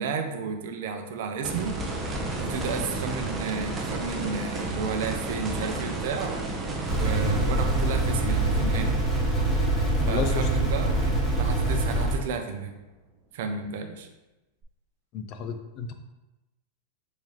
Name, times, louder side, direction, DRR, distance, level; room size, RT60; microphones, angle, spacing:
voice 1, 0.0-1.7 2.4-6.4 7.0-8.9 10.1-12.7 13.3-14.1, right 5 dB, 65° right, 5 dB, 0.5 m, -32 dB
sound 1, 1.4-12.3 14.6-14.7, right 2 dB, 20° right, 0.5 m, -33 dB
sound 2, 6.9-12.2, right 1 dB, 10° left, 1.2 m, -24 dB
voice 2, 10.1-10.5 15.1-15.9, left 5 dB, 40° left, 7 dB, 0.4 m, -32 dB
3.6 x 2.8 x 3.2 m, 1.0 s
supercardioid pair, 140°, 0 cm